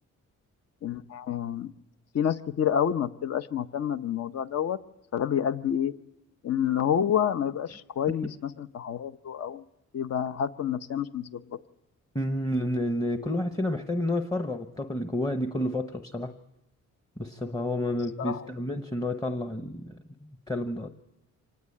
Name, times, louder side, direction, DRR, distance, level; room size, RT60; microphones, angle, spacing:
voice 1, 0.8-1.7 2.1-4.8 5.1-5.9 6.4-9.6 9.9-11.6 18.2-18.5, left 9 dB, 55° left, 12 dB, 0.9 m, -28 dB
voice 2, 12.1-16.3 17.2-20.9, left 1 dB, 10° left, 7 dB, 1.0 m, -30 dB
26.0 x 19.0 x 8.6 m, 0.88 s
wide cardioid pair, 140°, 31 cm